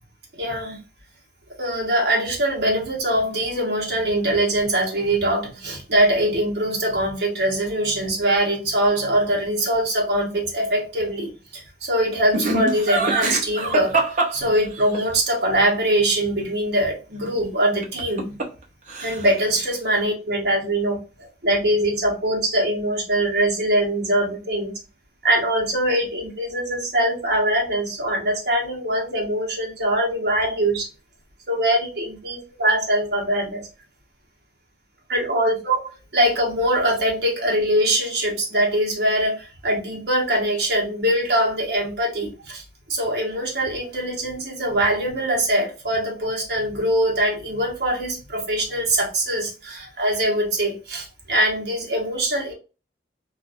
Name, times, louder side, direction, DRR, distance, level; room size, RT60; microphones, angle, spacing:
voice 1, 0.4-0.8 1.6-14.0 14.3-18.3 19.0-24.7 25.2-30.9 31.5-33.6 35.1-35.8 36.1-42.6 42.9-52.5, right 1 dB, 65° right, -2 dB, 1.2 m, -22 dB
Laughter, 12.3-15.0 17.8-18.6 18.9-19.4, right 3 dB, 45° right, 0.7 m, -23 dB
2.7 x 2.6 x 2.4 m, 0.32 s
head